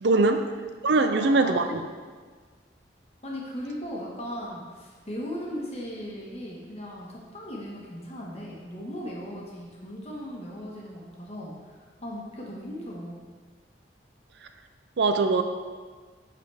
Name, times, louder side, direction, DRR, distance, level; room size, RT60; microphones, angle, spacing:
voice 1, 0.0-0.4 0.8-1.6 15.0-15.4, right 3 dB, 70° right, 7 dB, 0.5 m, -21 dB
voice 2, 0.9-1.8 3.2-13.2, equal, 35° left, -3 dB, 1.4 m, -37 dB
9.7 x 4.1 x 3.4 m, 1.5 s
head